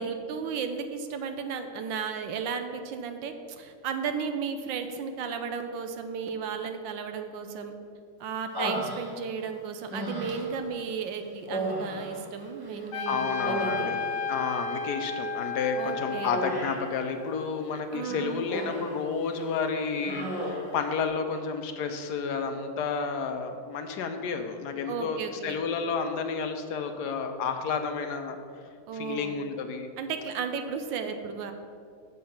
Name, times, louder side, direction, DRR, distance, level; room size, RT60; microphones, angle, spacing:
voice 1, 0.0-7.7 8.2-13.9 15.8-16.4 17.9-18.5 24.9-25.6 28.9-29.4 30.0-31.5, right 6 dB, 75° right, 7 dB, 1.2 m, -34 dB
Human voice, 8.5-9.4 9.9-10.6 11.4-12.9 13.2-14.3 16.3-16.9 18.0-19.0 19.3-19.6 20.0-20.8, right 1 dB, 15° right, 1.0 m, -34 dB
Wind instrument woodwind instrument, 12.4-16.6, right 16 dB, 55° right, 1.8 m, -43 dB
Trumpet, 12.9-17.6, left 7 dB, 85° left, 1.6 m, -34 dB
voice 2, 13.1-14.0 14.3-28.4 28.9-29.9, left 5 dB, 70° left, 6 dB, 1.0 m, -31 dB
7.4 x 6.9 x 5.8 m, 2.2 s
omnidirectional pair, 2.3 m